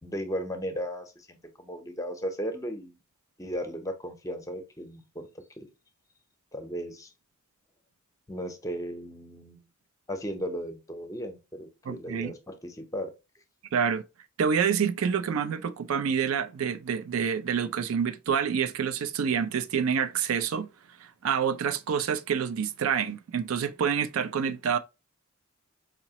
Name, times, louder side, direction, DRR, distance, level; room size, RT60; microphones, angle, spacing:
voice 1, 0.0-3.0 3.4-5.2 5.6-5.7 6.5-7.1 8.3-9.7 10.1-13.1, equal, 15° left, 0.7 m, -36 dB
voice 2, 11.9-12.3 13.7-14.0 14.4-20.7 21.2-24.8, right 7 dB, 75° right, 0.4 m, -27 dB
4.8 x 2.9 x 2.8 m
head